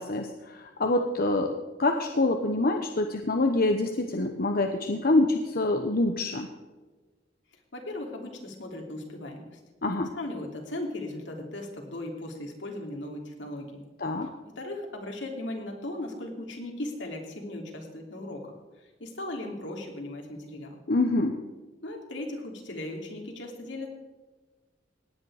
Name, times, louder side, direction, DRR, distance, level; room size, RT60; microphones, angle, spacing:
voice 1, 0.0-6.5 9.8-10.1 14.0-14.3 20.9-21.4, left 2 dB, 55° left, 5 dB, 1.0 m, -26 dB
voice 2, 7.5-9.6 10.1-13.9 14.5-20.8 21.8-23.9, left 1 dB, 80° left, 2 dB, 3.1 m, -37 dB
18.0 x 9.7 x 4.9 m, 1.3 s
head